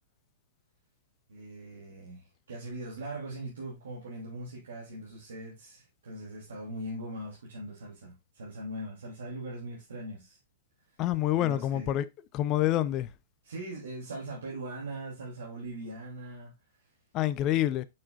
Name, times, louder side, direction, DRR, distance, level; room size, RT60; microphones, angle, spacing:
voice 1, 1.3-10.4 11.3-11.9 13.4-16.5, right 1 dB, 75° right, 3.1 m, -41 dB
voice 2, 11.0-12.0 12.3-13.1 17.1-17.8, left 13 dB, 35° left, 0.7 m, -27 dB
8.8 x 6.2 x 2.5 m
hypercardioid pair, 115°, 0 cm